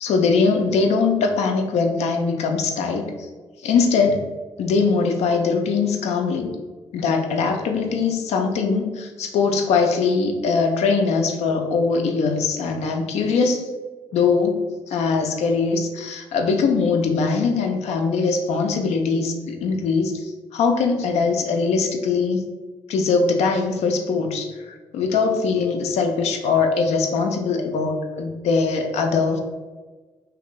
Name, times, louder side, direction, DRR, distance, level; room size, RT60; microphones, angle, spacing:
voice 1, 0.0-3.3 3.6-4.2 4.6-6.5 6.9-13.6 14.1-14.6 14.9-22.4 22.9-29.4, left 4 dB, 75° left, 4 dB, 0.4 m, -21 dB
2.5 x 2.5 x 3.0 m, 1.3 s
supercardioid pair, 45°, 11 cm